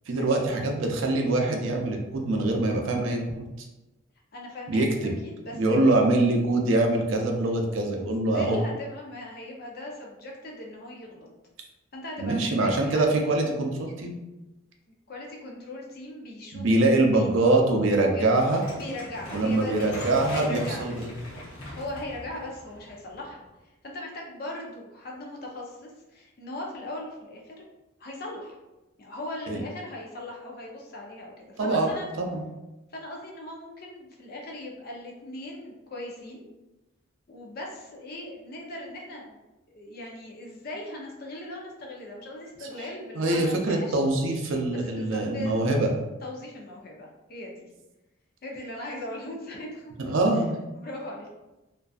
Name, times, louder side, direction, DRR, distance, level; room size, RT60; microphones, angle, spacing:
voice 1, 0.1-3.5 4.7-5.1 5.5-8.6 12.2-14.2 16.5-18.6 19.3-21.1 29.5-29.6 31.6-32.4 42.8-42.9 43.2-45.9 50.0-50.6, right 2 dB, 70° right, 2 dB, 0.4 m, -24 dB
voice 2, 4.3-5.8 8.3-11.3 11.9-13.0 15.1-17.3 18.1-18.3 18.7-20.9 21.8-23.5 23.8-27.5 28.0-28.6 29.0-32.1 32.9-36.4 37.3-39.4 39.7-44.0 44.7-45.7 46.2-47.7 48.4-50.1 50.7-51.3, left 1 dB, 45° left, -1 dB, 0.5 m, -39 dB
sound 1, 18.3-23.5, left 1 dB, 85° left, 0.7 m, -40 dB
2.5 x 2.3 x 2.3 m, 1.0 s
head